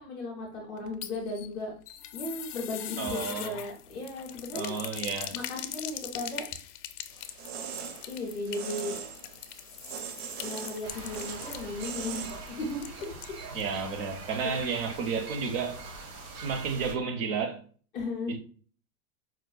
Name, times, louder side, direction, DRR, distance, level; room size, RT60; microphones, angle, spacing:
voice 1, 0.0-1.7 2.1-4.8 5.3-6.4 8.1-9.0 10.4-13.4 14.4-14.8 17.9-18.4, left 2 dB, 20° left, 0.4 m, -36 dB
sound 1, 0.8-13.7 14.0-14.1 14.4-14.5, left 12 dB, 75° left, 0.5 m, -42 dB
voice 2, 3.0-3.5 4.5-5.3 13.5-15.8 16.3-17.6 18.3-18.4, right 5 dB, 40° right, 0.5 m, -32 dB
sound 2, 7.1-12.8, right 7 dB, 70° right, 0.8 m, -41 dB
sound 3, 10.8-16.9, right 3 dB, 85° right, 1.1 m, -43 dB
4.6 x 2.1 x 2.3 m
supercardioid pair, 145°, 46 cm